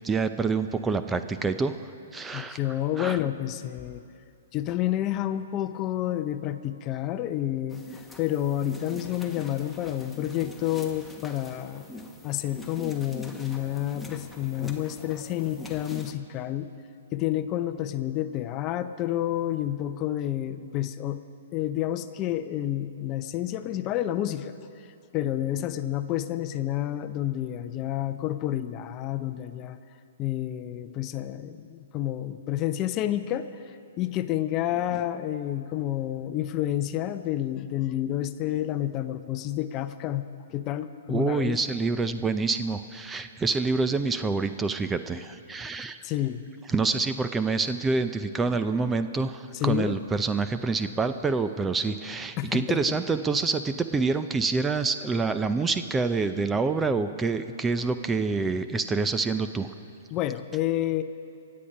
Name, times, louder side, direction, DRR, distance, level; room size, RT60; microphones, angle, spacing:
voice 1, 0.0-1.8 2.1-2.6 3.0-3.2 41.1-46.0 46.7-59.7, right 4 dB, 15° right, 10 dB, 0.5 m, -27 dB
voice 2, 2.3-4.0 4.5-7.8 8.2-11.8 12.2-16.7 17.1-21.2 21.5-24.5 25.1-29.8 30.2-41.6 46.0-46.5 49.5-50.0 52.4-52.8 60.1-61.0, left 12 dB, 30° left, 11 dB, 0.6 m, -29 dB
sound 1, 7.7-16.1, left 1 dB, 5° left, 1.2 m, -44 dB
23.5 x 8.6 x 5.4 m, 2.5 s
hypercardioid pair, 125°, 0 cm